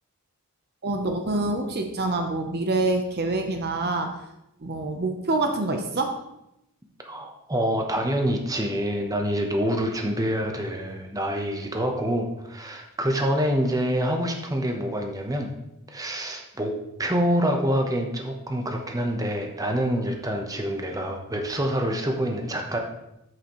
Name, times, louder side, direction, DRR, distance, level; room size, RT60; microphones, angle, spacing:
voice 1, 0.8-4.2 4.6-6.2, right 2 dB, 45° right, 5 dB, 0.8 m, -26 dB
voice 2, 7.0-15.5 15.9-22.8, equal, 15° right, 3 dB, 0.9 m, -26 dB
8.3 x 7.8 x 3.1 m, 0.85 s
head